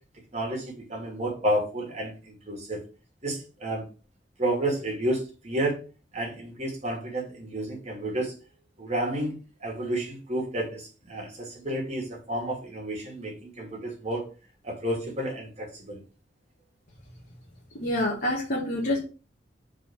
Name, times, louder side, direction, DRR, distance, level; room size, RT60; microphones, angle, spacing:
voice 1, 0.3-2.8 3.2-3.9 4.4-5.8 6.1-8.3 8.8-14.3 14.6-16.0, right 1 dB, 40° right, -1 dB, 2.5 m, -31 dB
voice 2, 17.7-19.0, left 1 dB, 55° left, -3 dB, 1.5 m, -27 dB
4.8 x 4.1 x 5.6 m, 0.34 s
head